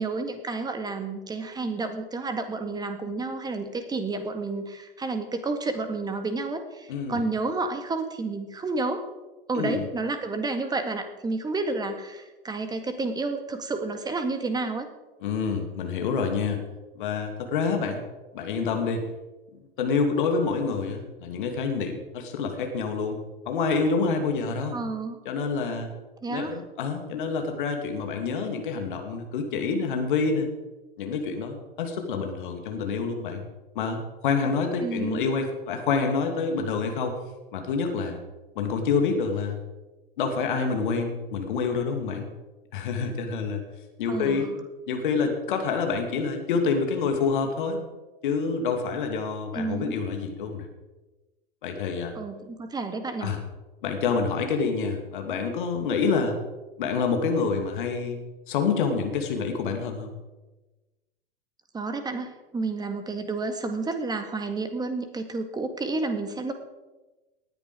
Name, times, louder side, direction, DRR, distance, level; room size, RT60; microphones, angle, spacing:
voice 1, 0.0-9.1 9.5-14.9 24.7-25.2 26.2-26.6 34.8-35.3 44.1-44.5 49.5-50.0 52.2-53.3 61.7-66.5, right 3 dB, 15° right, 8 dB, 1.7 m, -30 dB
voice 2, 6.9-7.2 9.5-9.9 15.2-16.6 17.0-18.0 18.3-19.1 19.8-23.2 23.5-24.8 25.2-25.9 26.3-30.5 31.0-33.4 33.7-37.1 37.5-38.2 38.6-39.6 40.2-42.3 42.7-43.6 44.0-44.5 44.9-47.8 48.2-50.7 51.6-52.1 53.2-53.4 53.8-56.4 56.8-58.2 58.5-60.1, left 5 dB, 60° left, 5 dB, 2.5 m, -27 dB
18.5 x 10.0 x 5.1 m, 1.1 s
figure-of-eight pair, 90°, 29 cm